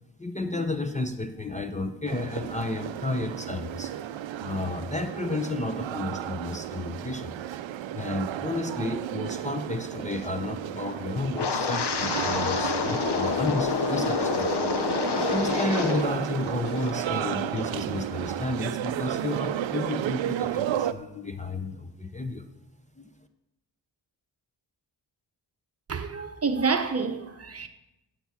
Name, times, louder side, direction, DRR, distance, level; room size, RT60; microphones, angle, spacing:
voice 1, 0.2-7.4 7.9-14.5 15.1-22.5 23.0-23.1, left 2 dB, 15° left, 0.6 m, -32 dB
sound 1, 2.1-20.9, right 11 dB, 90° right, 0.6 m, -33 dB
Wind, 11.3-16.2 16.5-16.9 17.3-17.6, left 5 dB, 60° left, 0.9 m, -27 dB
voice 2, 25.9-27.7, right 5 dB, 35° right, 0.8 m, -28 dB
8.6 x 8.2 x 7.1 m
wide cardioid pair, 125°, 44 cm